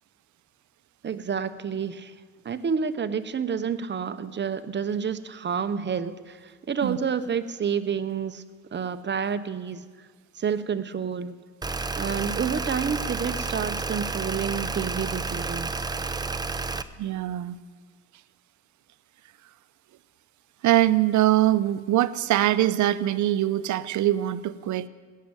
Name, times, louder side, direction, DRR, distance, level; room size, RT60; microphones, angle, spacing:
voice 1, 1.0-2.1 2.4-6.4 6.7-8.4 8.7-9.9 10.4-11.3 12.0-15.8, right 6 dB, 35° right, 11 dB, 0.8 m, -29 dB
sound 1, 11.6-16.8, right 3 dB, 15° right, 0.6 m, -30 dB
voice 2, 17.0-17.6 20.6-24.9, right 14 dB, 75° right, 14 dB, 0.7 m, -23 dB
17.5 x 6.7 x 9.0 m, 1.5 s
cardioid pair, 90°, 30 cm